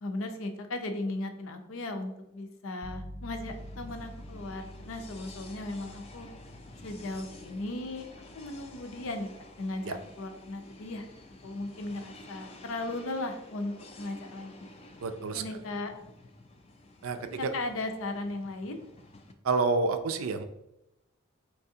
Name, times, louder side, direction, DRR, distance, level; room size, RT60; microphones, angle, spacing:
voice 1, 0.0-6.3 6.8-8.0 8.3-9.3 9.6-11.1 11.4-14.5 15.3-15.9 17.2-18.8, left 2 dB, 75° left, 6 dB, 0.6 m, -36 dB
sound 1, 2.8-13.3, equal, 20° right, 0.5 m, -49 dB
sound 2, 3.4-19.3, left 2 dB, 30° left, 0.3 m, -51 dB
voice 2, 15.0-15.4 17.0-17.5 19.4-20.4, right 3 dB, 80° right, 9 dB, 0.4 m, -29 dB
4.7 x 3.3 x 2.7 m, 0.87 s
head